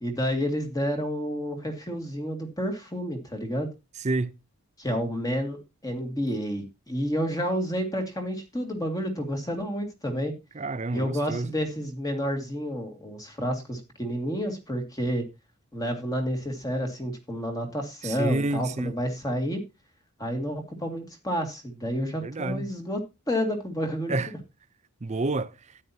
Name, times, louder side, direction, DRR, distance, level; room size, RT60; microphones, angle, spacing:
voice 1, 0.0-3.7 4.8-10.3 10.9-15.2 15.7-19.6 20.2-23.0 23.3-24.2, equal, 15° left, 2.1 m, -30 dB
voice 2, 4.0-4.3 10.6-11.5 18.0-18.9 22.2-22.7 24.1-24.3 25.0-25.5, right 2 dB, 30° right, 0.5 m, -28 dB
13.0 x 9.6 x 2.8 m
head